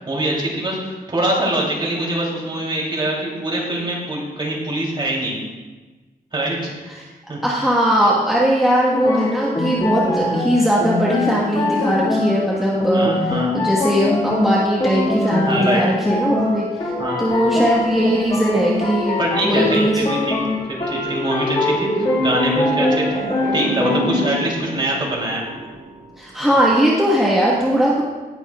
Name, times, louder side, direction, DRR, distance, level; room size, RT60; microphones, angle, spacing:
voice 1, 0.0-5.4 6.3-6.9 7.3-7.4 12.9-13.5 15.5-15.8 17.0-17.3 19.2-23.2 23.5-25.4 26.4-26.5, right 1 dB, 30° right, -3 dB, 3.0 m, -24 dB
voice 2, 7.4-16.9 17.2-19.2 19.4-20.0 26.2-28.0, equal, ahead, -6 dB, 1.4 m, -19 dB
sound 1, 8.9-24.5, left 2 dB, 35° left, 1.9 m, -23 dB
sound 2, 16.9-26.7, right 2 dB, 65° right, 1.3 m, -31 dB
18.5 x 6.9 x 2.4 m, 1.3 s
wide cardioid pair, 110°, 16 cm